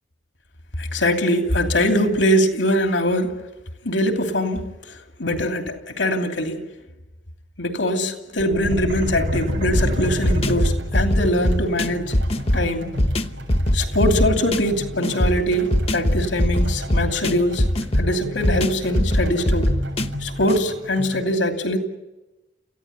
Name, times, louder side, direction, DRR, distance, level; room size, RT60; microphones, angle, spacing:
voice 1, 0.8-3.3 3.8-4.7 5.2-6.6 7.6-12.1 12.5-12.9 13.7-17.6 18.0-19.7 20.2-21.8, equal, 85° left, 5 dB, 2.8 m, -22 dB
sound 1, 8.4-11.2, equal, 45° right, 1.1 m, -26 dB
sound 2, 9.0-21.2, equal, 90° right, 7.4 m, -36 dB
sound 3, 9.7-20.6, left 1 dB, 30° left, 0.8 m, -22 dB
28.5 x 15.5 x 9.6 m, 1.1 s
head